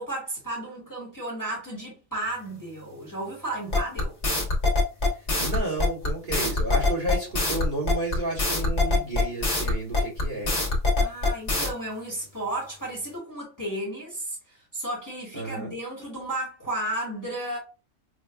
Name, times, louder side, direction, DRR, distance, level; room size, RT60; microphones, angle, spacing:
voice 1, 0.0-4.2 11.0-17.6, right 1 dB, 15° left, 1.2 m, -33 dB
sound 1, 3.7-11.7, left 2 dB, 60° left, 1.4 m, -23 dB
voice 2, 5.1-10.5 15.3-15.7, right 2 dB, 40° right, 1.6 m, -32 dB
5.3 x 2.3 x 2.2 m
omnidirectional pair, 1.3 m